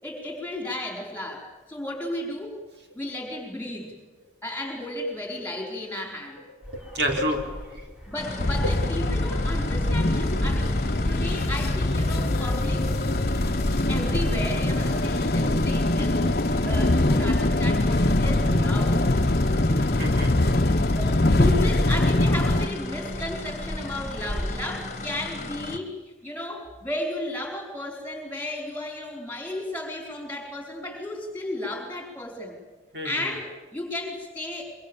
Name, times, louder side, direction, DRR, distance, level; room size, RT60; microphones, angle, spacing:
voice 1, 0.0-2.6 2.9-3.9 4.4-6.4 8.1-12.9 13.9-16.2 16.6-19.0 20.9-25.9 26.2-32.6 33.0-34.6, left 1 dB, 10° left, 2 dB, 4.6 m, -34 dB
sound 1, 6.6-24.7, equal, 5° right, 4.5 m, -38 dB
voice 2, 6.7-7.9 20.0-20.3 32.9-33.3, equal, 65° right, 2 dB, 4.2 m, -29 dB
sound 2, 8.2-25.8, left 2 dB, 40° left, 1.7 m, -36 dB
sound 3, 8.4-22.7, left 1 dB, 55° left, 1.0 m, -23 dB
25.5 x 23.5 x 7.2 m, 1.2 s
head